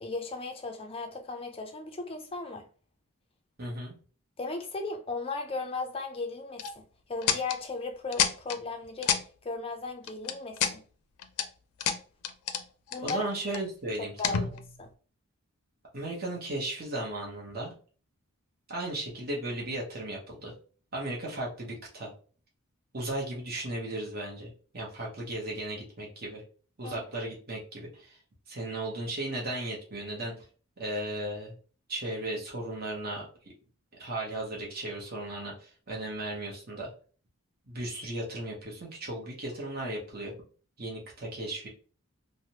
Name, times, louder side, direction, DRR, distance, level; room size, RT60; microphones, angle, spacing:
voice 1, 0.0-2.7 4.4-6.7 7.1-9.1 9.4-10.8 12.9-13.2 14.0-14.9 26.8-27.0, left 3 dB, 25° left, 0.4 m, -36 dB
voice 2, 3.6-4.0 13.0-14.5 15.9-17.7 18.7-20.5 20.9-22.1 22.9-26.4 26.8-28.2 28.5-30.3 30.8-31.5 31.9-33.3 34.0-36.9 37.7-40.3 40.8-41.7, right 1 dB, 40° right, 0.8 m, -36 dB
sound 1, 6.6-6.7 7.2-7.6 8.1-8.6 9.0-9.2 10.1-10.8 11.2-11.5 11.8-12.6 12.9-13.6 14.2-14.8, left 8 dB, 85° left, 0.4 m, -29 dB
3.2 x 2.0 x 2.8 m
head